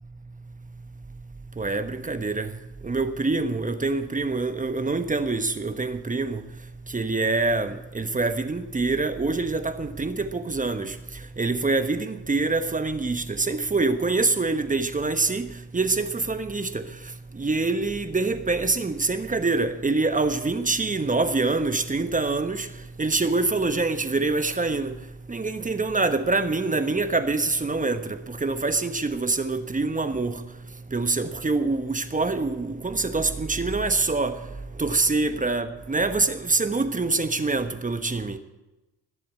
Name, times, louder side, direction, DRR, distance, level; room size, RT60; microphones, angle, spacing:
voice 1, 1.6-2.5 2.8-6.4 6.9-11.0 11.4-15.5 15.7-16.8 17.3-22.7 23.0-24.9 25.3-30.4 30.9-34.4 34.8-38.4, right 3 dB, 20° right, 1.2 m, -25 dB
20.5 x 7.6 x 8.6 m
hypercardioid pair, 65°, 41 cm